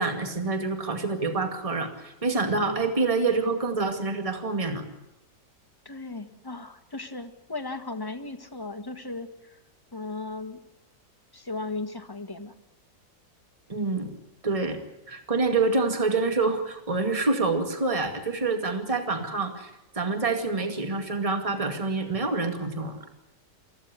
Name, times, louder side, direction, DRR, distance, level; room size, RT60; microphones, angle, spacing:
voice 1, 0.0-4.8 13.7-14.1 14.4-14.8 15.1-19.7 19.9-23.0, right 3 dB, 20° right, 5 dB, 2.3 m, -27 dB
voice 2, 5.8-9.6 9.9-10.6 11.3-12.5, left 3 dB, 15° left, 6 dB, 1.4 m, -36 dB
24.0 x 15.5 x 9.6 m, 0.97 s
omnidirectional pair, 1.8 m